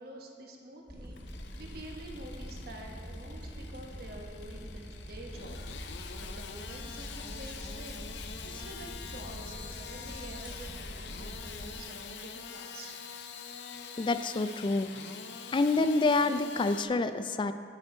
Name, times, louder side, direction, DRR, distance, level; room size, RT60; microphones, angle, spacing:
voice 1, 0.0-5.6 5.8-8.1 8.4-13.0, right 1 dB, 60° right, 1 dB, 1.1 m, -48 dB
sound 1, 0.9-11.8, equal, 10° right, 1.9 m, -44 dB
Engine starting / Sawing, 1.0-16.8, left 6 dB, 70° left, 0.6 m, -45 dB
voice 2, 14.0-14.9 15.5-17.5, left 3 dB, 30° left, 11 dB, 0.3 m, -27 dB
9.1 x 7.5 x 4.3 m, 2.4 s
head